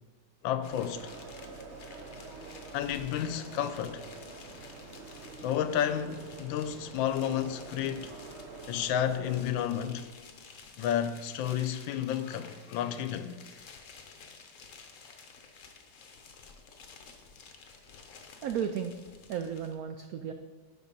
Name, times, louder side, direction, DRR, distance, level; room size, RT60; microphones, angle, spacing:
voice 1, 0.4-1.2 2.7-4.1 5.4-8.1 8.7-10.1 10.8-13.4, left 9 dB, 85° left, 1.3 m, -31 dB
sound 1, 0.6-19.8, left 5 dB, 55° left, 1.0 m, -52 dB
sound 2, 0.7-9.5, right 3 dB, 50° right, 0.9 m, -47 dB
voice 2, 18.4-19.0 19.3-20.3, right 8 dB, 85° right, 0.8 m, -34 dB
10.5 x 4.3 x 5.3 m
omnidirectional pair, 2.1 m